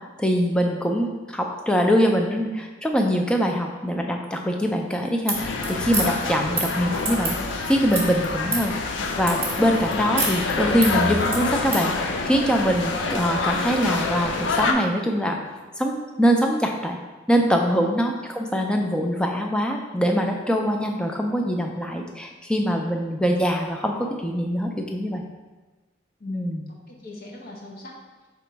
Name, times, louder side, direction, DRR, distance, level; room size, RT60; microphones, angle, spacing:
voice 1, 0.2-7.4 7.7-15.4 15.8-17.0 17.3-25.2 26.3-26.6, equal, 5° left, 2 dB, 0.3 m, -23 dB
sound 1, 5.2-11.9, right 3 dB, 15° right, 0.8 m, -30 dB
sound 2, 5.3-14.7, left 4 dB, 85° left, 0.4 m, -27 dB
voice 2, 26.2-27.9, left 2 dB, 55° left, -1 dB, 0.8 m, -41 dB
3.5 x 2.9 x 4.4 m, 1.2 s
head